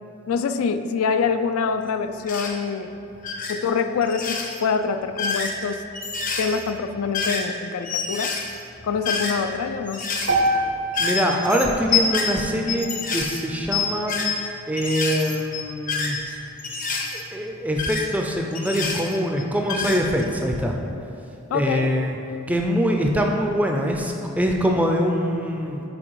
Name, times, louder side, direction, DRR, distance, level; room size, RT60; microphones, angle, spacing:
voice 1, 0.3-2.9 3.5-5.8 6.4-8.4 8.8-10.0 21.5-22.0, left 5 dB, 85° left, 9 dB, 0.3 m, -25 dB
sound 1, 2.2-2.6 3.2-3.6 4.0-4.6 5.0-7.6 7.8-9.6 9.9-10.5 10.9-14.5 14.8-17.2 17.8-19.4 19.7-20.2, left 5 dB, 40° left, 0.6 m, -27 dB
sound 2, 10.3-14.4, right 1 dB, 55° right, 0.6 m, -28 dB
voice 2, 11.0-14.2 14.7-16.2 17.1-20.7 21.5-22.2 22.5-25.8, equal, 5° right, 1 dB, 0.4 m, -23 dB
6.2 x 4.2 x 4.6 m, 2.7 s
head